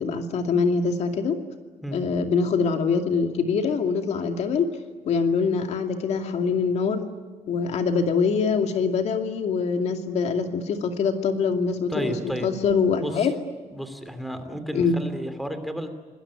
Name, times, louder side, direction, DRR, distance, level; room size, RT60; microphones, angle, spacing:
voice 1, 0.0-1.4 1.9-4.7 5.1-7.0 7.5-12.1 12.4-13.3 14.7-15.0, left 5 dB, 60° left, 5 dB, 2.5 m, -24 dB
voice 2, 11.9-12.5 13.0-13.3 13.7-15.9, equal, ahead, 9 dB, 2.6 m, -32 dB
27.0 x 20.0 x 9.8 m, 1.4 s
cardioid pair, 145°, 13 cm